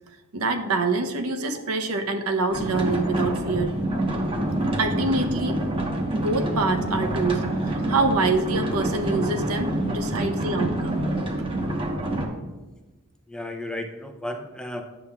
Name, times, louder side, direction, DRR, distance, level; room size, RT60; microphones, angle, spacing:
voice 1, 0.3-3.7 4.8-5.6 6.1-11.0, right 3 dB, 80° right, 6 dB, 0.7 m, -25 dB
sound 1, 2.5-12.3, right 1 dB, 25° right, 0.9 m, -27 dB
voice 2, 13.3-14.8, left 1 dB, 5° left, 4 dB, 0.5 m, -34 dB
9.6 x 6.9 x 2.3 m, 1.2 s
head